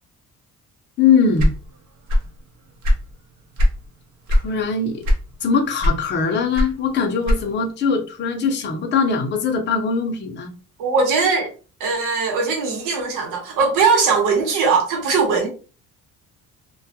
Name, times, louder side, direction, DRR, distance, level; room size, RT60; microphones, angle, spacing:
voice 1, 1.0-1.5 4.3-5.0 5.4-10.5, left 5 dB, 35° left, 0.5 m, -21 dB
sound 1, 1.4-2.4 2.7-3.8 4.3-4.5 5.0-5.5 5.8-7.7, left 1 dB, 60° right, 0.6 m, -19 dB
voice 2, 10.8-11.5 11.8-15.5, right 5 dB, 90° right, 0.9 m, -20 dB
2.2 x 2.1 x 2.7 m
cardioid pair, 155°, 32 cm